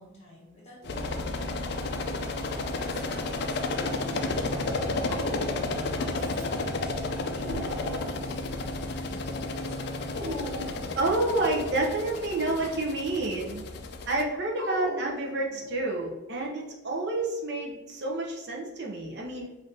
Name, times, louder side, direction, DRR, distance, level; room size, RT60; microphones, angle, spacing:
voice 1, 0.0-1.7 2.9-5.1 5.3-10.0, left 1 dB, 30° left, -5 dB, 1.4 m, -50 dB
sound 1, 0.8-14.2, left 2 dB, 50° left, 0.4 m, -32 dB
Dog, 0.8-1.7 2.7-3.6 5.0-5.8 6.2-6.7 7.1-8.4 10.1-11.2 12.4-12.8 14.6-15.9, equal, 90° right, 0.8 m, -40 dB
voice 2, 11.0-13.6 14.1-19.5, right 2 dB, 50° right, -1 dB, 0.6 m, -29 dB
5.3 x 2.6 x 2.7 m, 1.1 s
head